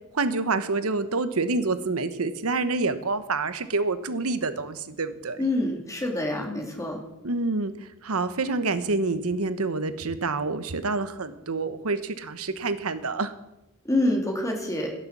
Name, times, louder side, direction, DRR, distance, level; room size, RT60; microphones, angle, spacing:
voice 1, 0.1-5.4 7.2-7.7 8.0-13.3, right 3 dB, 75° right, 12 dB, 1.0 m, -27 dB
voice 2, 5.4-7.0 13.8-14.9, left 1 dB, 15° left, 1 dB, 2.7 m, -26 dB
16.0 x 6.8 x 7.2 m, 0.95 s
head